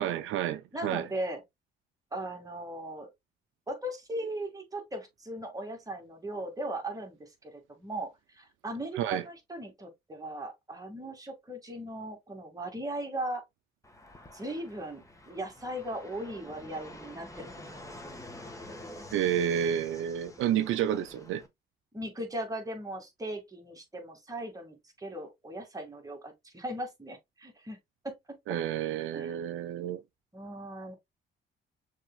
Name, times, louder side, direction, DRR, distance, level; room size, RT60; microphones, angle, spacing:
voice 1, 0.0-1.1 9.0-9.2 19.1-21.4 28.5-30.0, right 10 dB, 85° right, 0.5 m, -30 dB
voice 2, 0.7-1.4 2.1-3.1 3.7-13.4 14.3-17.8 21.9-27.8 28.0-28.2 29.1-29.3 30.3-30.9, right 1 dB, 15° right, 2.0 m, -38 dB
Fixed-wing aircraft airplane, 13.8-21.5, left 1 dB, 15° left, 1.4 m, -48 dB
6.4 x 3.5 x 2.3 m
cardioid pair, 90°, 20 cm